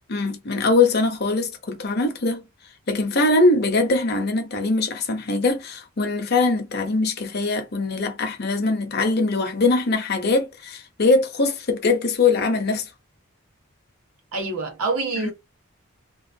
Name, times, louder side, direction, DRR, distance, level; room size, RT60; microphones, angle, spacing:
voice 1, 0.1-2.4 2.9-12.9 15.2-15.3, left 3 dB, 50° left, 0.7 m, -22 dB
voice 2, 14.3-15.3, right 3 dB, 85° right, 1.3 m, -26 dB
3.0 x 2.4 x 2.6 m
head